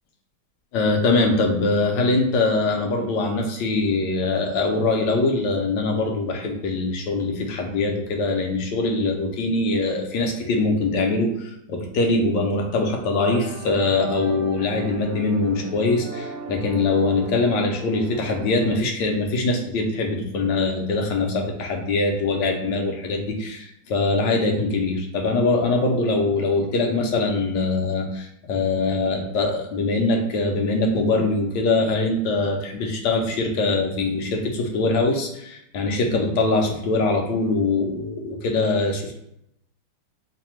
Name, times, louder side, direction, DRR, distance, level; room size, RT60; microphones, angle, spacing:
voice 1, 0.7-39.2, left 3 dB, 70° left, 2 dB, 1.1 m, -23 dB
sound 1, 13.2-18.8, right 1 dB, 75° right, 1.1 m, -37 dB
3.3 x 2.2 x 4.3 m, 0.76 s
omnidirectional pair, 2.3 m